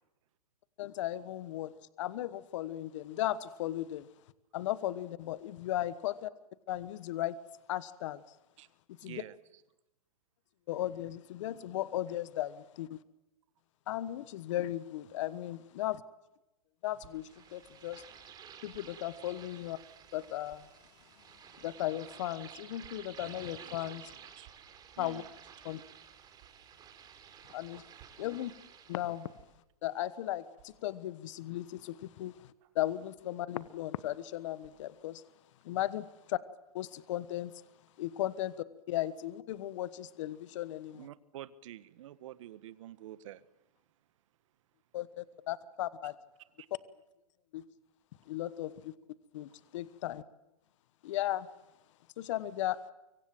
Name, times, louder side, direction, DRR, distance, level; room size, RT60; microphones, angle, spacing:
voice 1, 0.8-1.7 2.0-4.1 4.5-6.3 6.7-7.4 7.7-8.2 9.0-9.2 10.7-13.0 13.9-16.0 16.8-18.0 18.6-19.8 20.1-20.7 21.6-24.1 25.0-25.2 25.6-25.8 27.5-27.8 28.2-28.5 28.9-29.3 29.8-32.5 32.7-35.2 35.6-36.4 36.7-37.5 38.0-38.5 38.9-41.1 44.9-46.1 47.5-47.6 48.3-48.9 49.3-50.2 51.0-51.5 52.2-52.9, left 14 dB, 55° left, 16 dB, 1.2 m, -36 dB
voice 2, 9.0-9.4 24.4-24.5 25.0-25.3 40.9-43.4 46.6-46.7, right 13 dB, 55° right, 14 dB, 1.5 m, -48 dB
sound 1, 17.0-17.1 18.7-18.9 19.7-19.8 20.4-20.6 21.6-21.8 22.8-22.9 23.3-23.4 24.4-24.7 26.3-26.5 27.7-28.2 29.3-29.5 30.5-30.7 31.5-31.8 32.6-32.8 33.6-33.9 34.6-34.9, right 14 dB, 40° right, 5.4 m, -61 dB
sound 2, 17.1-29.4, right 8 dB, 20° right, 3.7 m, -53 dB
25.0 x 24.0 x 7.8 m, 0.94 s
hypercardioid pair, 135°, 19 cm